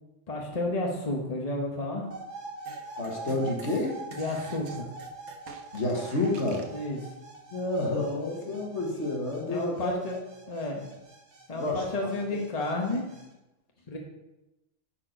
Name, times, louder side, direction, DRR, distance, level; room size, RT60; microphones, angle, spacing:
voice 1, 0.3-2.0 4.1-4.9 6.7-7.0 9.5-10.2 10.5-10.9 11.5-13.0 13.9-14.0, left 2 dB, 30° left, 0 dB, 1.2 m, -31 dB
sound 1, 2.1-13.3, right 3 dB, 50° right, 2.0 m, -44 dB
sound 2, 2.6-6.8, right 4 dB, 90° right, 1.5 m, -47 dB
voice 2, 3.0-4.0 5.7-6.6 7.5-10.2 11.5-12.1, left 2 dB, 55° left, 0 dB, 1.8 m, -30 dB
10.5 x 4.5 x 5.1 m, 0.96 s
omnidirectional pair, 1.5 m